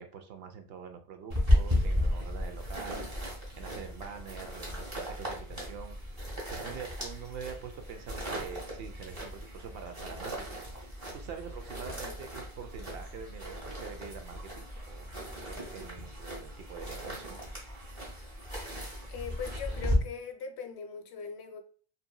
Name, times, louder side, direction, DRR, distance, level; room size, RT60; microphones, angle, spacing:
voice 1, 0.0-3.1 3.6-6.0 6.5-10.6 11.1-17.4, right 7 dB, 70° right, 6 dB, 0.8 m, -45 dB
sound 1, 1.3-20.0, left 1 dB, 30° right, 1.0 m, -35 dB
voice 2, 19.1-21.6, left 6 dB, 80° left, 5 dB, 0.8 m, -40 dB
2.7 x 2.7 x 2.2 m, 0.43 s
omnidirectional pair, 1.1 m